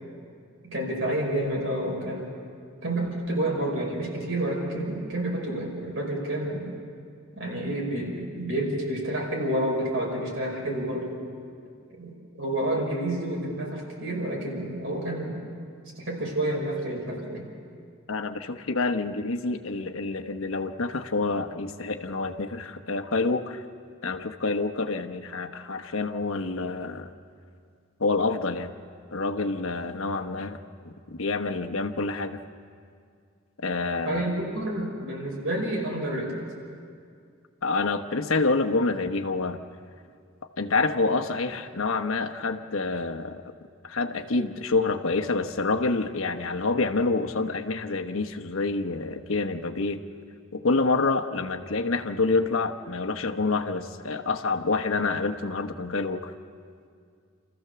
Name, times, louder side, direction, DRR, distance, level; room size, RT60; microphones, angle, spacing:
voice 1, 0.6-2.3 2.8-6.7 7.3-11.2 11.9-15.4 16.0-17.5 34.1-36.4, right 1 dB, 70° right, -2 dB, 5.3 m, -29 dB
voice 2, 18.1-23.6 24.0-27.1 28.0-28.7 29.1-30.6 30.8-32.4 33.6-34.3 37.6-39.6 40.6-43.5 43.8-50.0 50.5-56.3, left 3 dB, 75° left, 5 dB, 1.0 m, -27 dB
28.0 x 14.5 x 6.9 m, 2.3 s
head